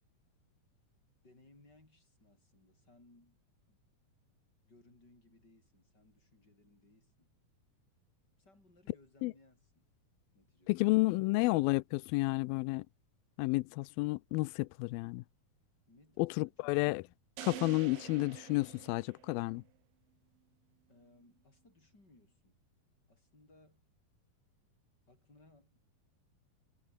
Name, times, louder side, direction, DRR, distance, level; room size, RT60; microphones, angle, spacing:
voice 1, 1.2-3.4 3.7-3.8 4.6-7.3 8.4-9.9 10.3-10.9 15.9-16.8 20.9-22.6 23.1-23.9 25.1-25.8, left 2 dB, 25° left, 8.3 m, -64 dB
voice 2, 10.7-12.8 13.4-15.2 16.2-17.0 17.4-19.6, left 22 dB, 85° left, 2.4 m, -31 dB
sound 1, 17.4-19.7, right 16 dB, 75° right, 2.5 m, -47 dB
omnidirectional pair, 4.2 m